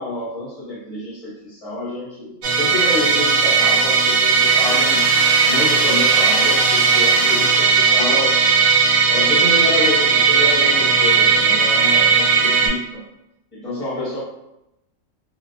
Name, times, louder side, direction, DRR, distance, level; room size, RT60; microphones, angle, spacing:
voice 1, 0.0-5.1 5.4-8.4 9.1-13.0 13.5-14.2, left 2 dB, 30° left, -10 dB, 0.8 m, -28 dB
Musical instrument, 2.4-12.7, right 5 dB, 80° right, 1.0 m, -16 dB
sound 1, 4.4-8.5, left 1 dB, 65° left, 0.3 m, -29 dB
2.4 x 2.1 x 2.7 m, 0.87 s
omnidirectional pair, 1.4 m